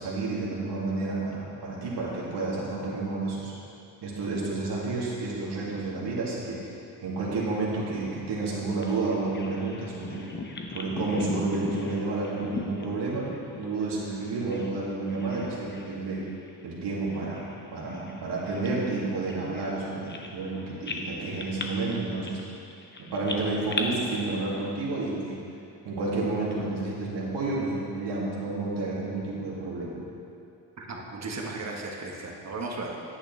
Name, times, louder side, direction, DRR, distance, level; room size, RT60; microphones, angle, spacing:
voice 1, 0.0-3.5 4.0-6.6 7.0-10.2 10.7-13.3 13.6-16.3 16.6-22.4 23.0-25.4 25.8-30.0, right 3 dB, 70° right, -5 dB, 2.3 m, -30 dB
Bird vocalization bird call bird song, 8.8-14.8 15.1-16.0 16.3-16.5 17.1-20.5 20.8-23.8, left 3 dB, 25° left, 0.9 m, -38 dB
voice 2, 30.8-33.0, right 3 dB, 40° right, 0 dB, 1.4 m, -35 dB
9.8 x 8.4 x 3.3 m, 2.6 s
supercardioid pair, 75°, 43 cm